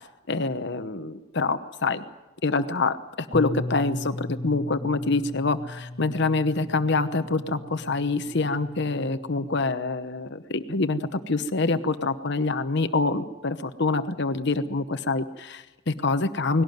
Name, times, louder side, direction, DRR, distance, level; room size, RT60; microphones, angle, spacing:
voice 1, 0.3-2.0 2.4-16.6, left 3 dB, 60° left, 10 dB, 1.0 m, -26 dB
Bass guitar, 3.3-9.6, left 1 dB, 15° left, 1.5 m, -37 dB
20.0 x 17.5 x 9.3 m, 1.1 s
head